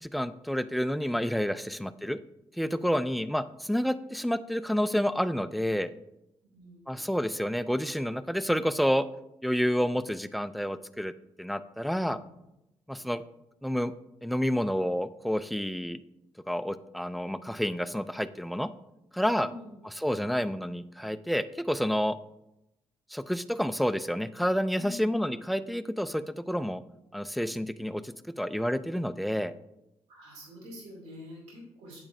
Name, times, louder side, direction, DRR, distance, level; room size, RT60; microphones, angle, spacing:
voice 1, 0.0-2.2 2.6-5.9 6.9-9.1 9.4-11.1 11.4-12.2 12.9-13.2 13.6-13.9 14.2-16.0 16.5-18.7 19.1-19.5 20.0-22.2 23.1-26.8 27.1-29.5, equal, ahead, 13 dB, 0.4 m, -29 dB
voice 2, 6.5-7.1 19.3-19.8 24.7-25.2 30.1-32.0, left 1 dB, 90° right, -2 dB, 2.6 m, -47 dB
8.6 x 6.1 x 2.6 m, 0.90 s
supercardioid pair, 55°, 11 cm